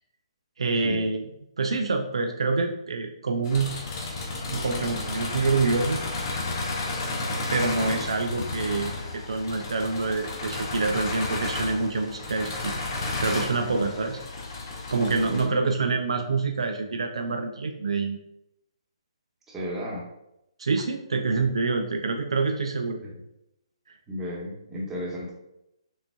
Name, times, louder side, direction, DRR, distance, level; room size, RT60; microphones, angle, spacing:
voice 1, 0.6-1.2 1.6-3.8 4.5-6.0 7.5-12.7 13.2-14.2 14.9-18.2 20.6-23.0, right 3 dB, 70° right, 4 dB, 0.4 m, -26 dB
sound 1, 3.4-15.5, left 3 dB, 40° left, 0.8 m, -32 dB
voice 2, 19.5-20.0 23.0-23.1 24.1-25.3, equal, 10° right, -6 dB, 1.2 m, -33 dB
6.0 x 2.5 x 2.3 m, 0.85 s
figure-of-eight pair, 135°, 3 cm